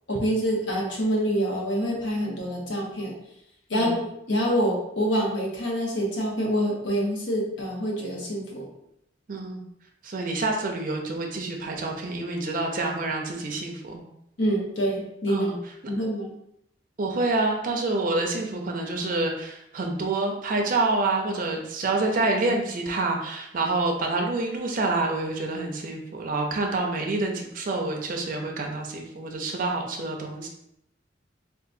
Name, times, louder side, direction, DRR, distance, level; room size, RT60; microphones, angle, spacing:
voice 1, 0.1-3.1 3.7-8.7 14.4-15.5 15.9-16.3, equal, 80° left, -2 dB, 0.9 m, -26 dB
voice 2, 9.3-9.6 10.0-14.0 15.3-15.5 17.0-30.5, right 2 dB, 50° right, 2 dB, 0.5 m, -27 dB
3.7 x 2.4 x 2.5 m, 0.77 s
head